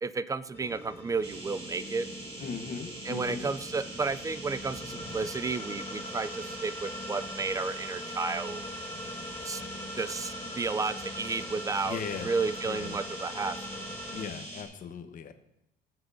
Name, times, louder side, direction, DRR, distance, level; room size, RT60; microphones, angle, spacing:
voice 1, 0.0-2.1 3.1-8.6 9.4-12.0 12.2-13.6, right 4 dB, 20° right, 15 dB, 0.4 m, -32 dB
sound 1, 0.5-14.3, left 1 dB, 15° left, 3.2 m, -42 dB
sound 2, 1.2-14.6, right 1 dB, 35° right, 3.9 m, -43 dB
voice 2, 2.4-3.5 11.8-12.4 12.6-13.0 14.1-15.3, left 6 dB, 50° left, 8 dB, 1.1 m, -38 dB
23.0 x 7.9 x 2.7 m, 0.86 s
cardioid pair, 110°, 17 cm